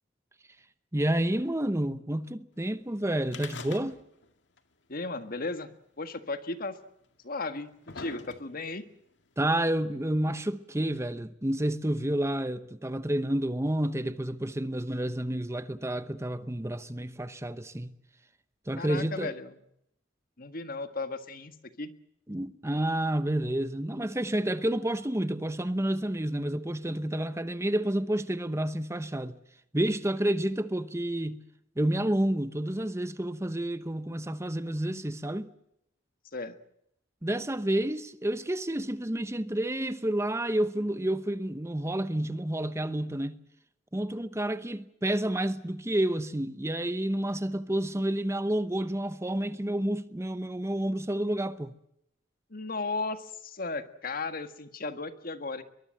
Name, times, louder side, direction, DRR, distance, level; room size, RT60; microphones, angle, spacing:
voice 1, 0.9-4.0 9.4-18.0 18.7-19.3 22.3-29.4 29.7-31.4 31.8-35.5 37.2-43.4 43.9-51.7, right 1 dB, 15° right, 0.9 m, -30 dB
sound 1, 3.3-4.3 4.6-4.7 5.6-5.7 6.6-6.7 7.4-8.7 9.6-9.7, left 4 dB, 80° left, 2.0 m, -43 dB
voice 2, 4.9-5.7 6.0-6.8 7.2-8.8 18.8-19.5 20.4-21.9 36.3-36.6 52.5-55.6, left 3 dB, 50° left, 1.7 m, -35 dB
22.5 x 22.0 x 7.7 m
head